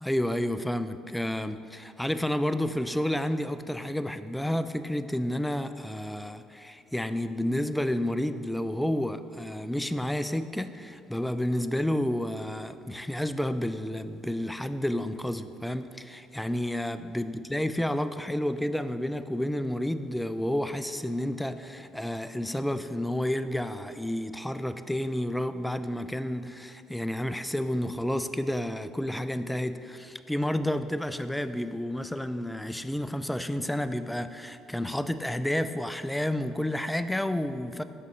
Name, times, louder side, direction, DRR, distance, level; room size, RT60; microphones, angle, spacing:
voice 1, 0.0-37.8, left 1 dB, 5° left, 11 dB, 0.3 m, -30 dB
6.2 x 5.2 x 4.1 m, 2.5 s
hypercardioid pair, 60°, 0 cm